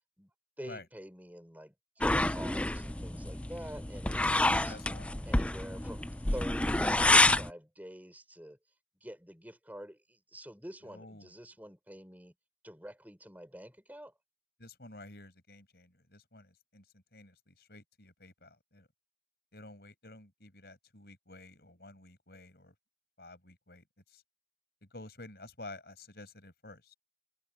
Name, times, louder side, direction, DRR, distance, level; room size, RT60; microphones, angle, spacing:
voice 1, 0.6-4.8 5.3-8.6 9.0-12.3 12.6-14.1, equal, 10° right, 6.2 m, -47 dB
sound 1, 2.0-7.5, left 2 dB, 5° left, 0.4 m, -28 dB
voice 2, 4.2-5.1 10.8-11.3 14.6-18.9 19.5-22.7 23.2-24.2 24.9-26.9, left 2 dB, 60° left, 5.5 m, -51 dB
head